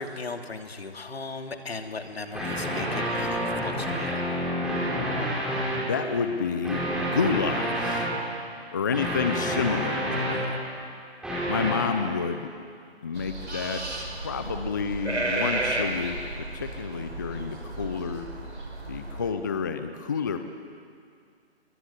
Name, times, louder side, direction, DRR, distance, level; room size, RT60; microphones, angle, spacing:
voice 1, 0.0-4.2, left 3 dB, 65° left, 5 dB, 2.8 m, -37 dB
sound 1, 2.3-5.9 6.6-8.2 8.9-10.6 11.2-11.8, equal, ahead, 4.3 m, -28 dB
voice 2, 5.9-8.1 8.7-10.6 11.5-12.5 13.0-13.8 14.2-18.3 18.9-20.4, left 5 dB, 20° left, 8 dB, 0.6 m, -29 dB
sound 2, 13.1-19.3, right 2 dB, 80° right, 5.4 m, -33 dB
22.5 x 22.0 x 9.8 m, 2.3 s
figure-of-eight pair, 150°, 33 cm